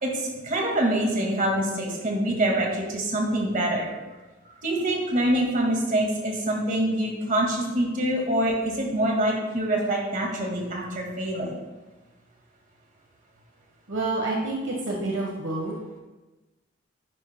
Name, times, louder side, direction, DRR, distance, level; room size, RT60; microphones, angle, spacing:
voice 1, 0.0-3.9 4.6-11.6, right 1 dB, 45° right, -1 dB, 1.9 m, -25 dB
voice 2, 13.9-15.7, right 2 dB, 70° right, -2 dB, 1.2 m, -28 dB
10.0 x 9.9 x 2.2 m, 1.2 s
head